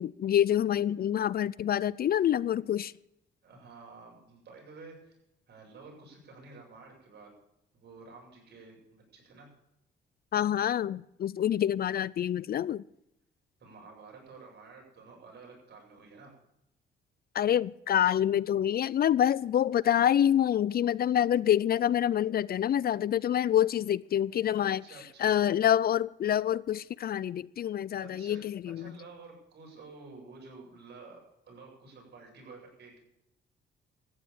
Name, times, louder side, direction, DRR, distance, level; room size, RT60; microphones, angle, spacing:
voice 1, 0.0-2.9 10.3-12.8 17.3-24.8 25.2-28.9, left 10 dB, 50° left, 0.4 m, -27 dB
voice 2, 3.4-5.2 5.5-7.3 7.7-9.5 13.6-16.3 24.5-25.3 28.0-31.2 31.4-33.0, right 3 dB, 55° right, 7.9 m, -51 dB
14.5 x 9.7 x 7.1 m
cardioid pair, 90°, 20 cm